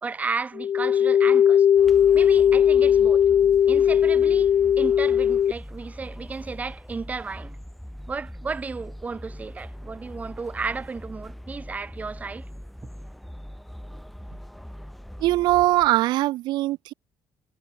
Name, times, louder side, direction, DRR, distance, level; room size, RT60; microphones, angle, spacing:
voice 1, 0.0-1.7 2.1-3.2 3.7-7.6 8.1-12.5, right 4 dB, 20° right, 2.8 m, -33 dB
sound 1, 0.6-5.5, left 9 dB, 40° left, 0.9 m, -18 dB
sound 2, 1.7-16.0, equal, ahead, 7.9 m, -41 dB
voice 2, 15.2-16.9, right 17 dB, 75° right, 1.5 m, -21 dB
cardioid pair, 155°, 8 cm